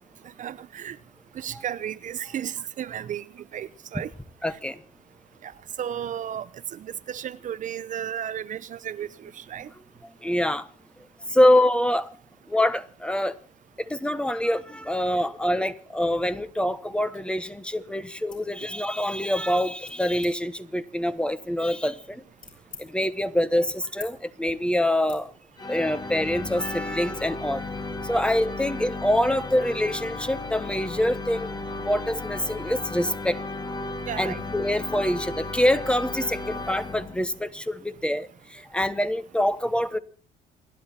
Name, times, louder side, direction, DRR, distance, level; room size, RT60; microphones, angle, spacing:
voice 1, 0.4-1.0 1.3-4.1 5.4-5.5 5.8-9.7 34.1-34.4, right 9 dB, 50° right, 0.8 m, -34 dB
voice 2, 4.4-4.8 10.2-10.7 11.3-12.1 12.5-13.4 13.8-22.2 22.8-25.3 25.7-27.6 28.1-31.5 31.8-33.4 34.2-40.0, left 1 dB, 5° left, 1.2 m, -25 dB
sound 1, 18.3-18.5 19.0-19.3 19.8-20.3 21.0-22.9 23.3-24.1 24.4-24.6 25.0-25.2, left 5 dB, 50° left, 6.9 m, -47 dB
sound 2, 25.6-37.5, left 3 dB, 25° left, 1.7 m, -35 dB
28.5 x 11.0 x 4.4 m
cardioid pair, 110°, 17 cm